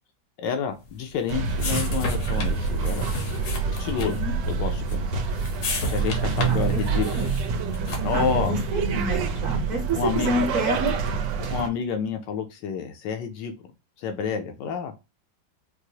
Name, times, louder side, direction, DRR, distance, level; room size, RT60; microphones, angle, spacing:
voice 1, 0.4-3.1 3.8-4.2 4.5-5.2 5.9-7.1 8.0-8.6 9.9-10.3 11.4-13.5 14.0-14.9, left 6 dB, 75° left, 6 dB, 1.2 m, -29 dB
sound 1, 0.8-8.3, left 2 dB, 55° left, 0.9 m, -35 dB
sound 2, 1.3-11.7, right 5 dB, 80° right, 1.3 m, -26 dB
voice 2, 4.0-4.3 6.4-7.3 8.1-11.0, equal, 50° right, 0 dB, 1.1 m, -29 dB
4.6 x 2.0 x 2.7 m, 0.26 s
omnidirectional pair, 2.1 m